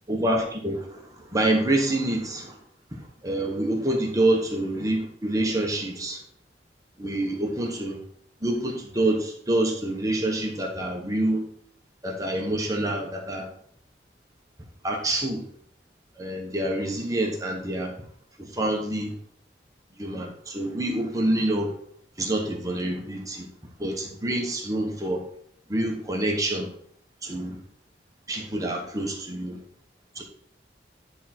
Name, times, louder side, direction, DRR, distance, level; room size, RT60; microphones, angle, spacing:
voice 1, 0.1-2.6 2.9-6.2 7.0-8.0 8.4-11.4 12.0-13.5 14.8-15.4 16.2-18.0 18.4-19.2 20.0-21.7 22.2-23.5 23.8-25.2 25.7-26.7 27.2-27.6 28.3-29.6 30.1-30.2, right 1 dB, 20° right, 1 dB, 1.2 m, -27 dB
10.0 x 3.7 x 4.4 m, 0.63 s
head